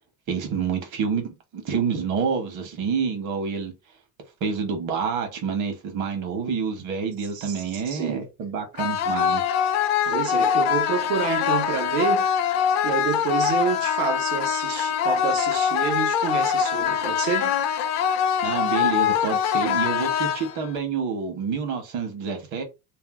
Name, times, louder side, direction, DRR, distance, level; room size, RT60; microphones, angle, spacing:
voice 1, 0.3-3.7 4.4-9.4 18.4-22.6, right 6 dB, 55° right, 1.1 m, -28 dB
voice 2, 7.3-8.2 10.0-12.3 12.8-17.5, right 7 dB, 90° right, 1.1 m, -28 dB
sound 1, 8.8-20.8, left 8 dB, 50° left, 0.4 m, -23 dB
2.7 x 2.2 x 3.5 m
cardioid pair, 160°, 36 cm